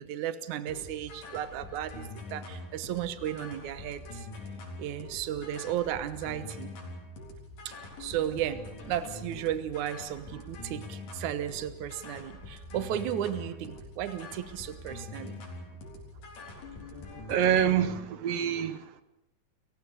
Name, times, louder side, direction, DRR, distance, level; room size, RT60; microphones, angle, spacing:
voice 1, 0.0-4.3 4.8-6.7 7.7-7.8 8.0-15.4, right 11 dB, 75° right, 2.5 m, -34 dB
sound 1, 0.7-18.0, left 2 dB, 90° left, 5.2 m, -44 dB
voice 2, 17.3-19.0, right 9 dB, 60° right, 2.1 m, -26 dB
29.5 x 16.0 x 6.8 m
omnidirectional pair, 3.6 m